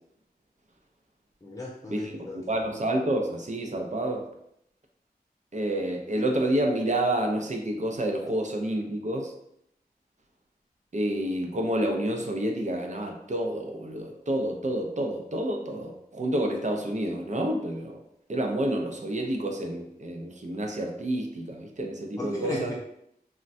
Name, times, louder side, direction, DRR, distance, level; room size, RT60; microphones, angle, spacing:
voice 1, 1.4-2.4 22.2-22.7, left 1 dB, 20° left, -3 dB, 0.4 m, -35 dB
voice 2, 2.5-4.3 5.5-9.3 10.9-18.0 18.3-22.7, right 1 dB, 45° right, 2 dB, 0.5 m, -29 dB
3.7 x 2.1 x 2.5 m, 0.75 s
wide cardioid pair, 50°, 16 cm